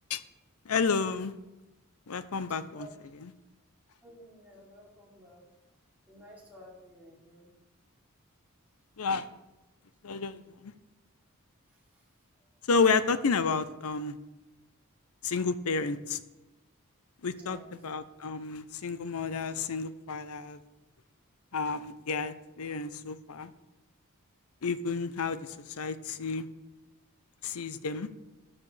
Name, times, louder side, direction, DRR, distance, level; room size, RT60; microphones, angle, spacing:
voice 1, 0.7-1.3 2.1-2.9 3.2-3.3 9.0-9.3 10.0-10.7 12.7-14.2 15.2-16.2 17.2-20.6 21.5-23.5 24.6-26.5 27.4-28.1, left 4 dB, 80° left, 14 dB, 0.6 m, -31 dB
voice 2, 4.0-5.4 6.1-7.5 11.7-12.0 17.4-17.7, equal, 10° right, -5 dB, 2.8 m, -53 dB
13.0 x 9.8 x 3.3 m, 1.0 s
head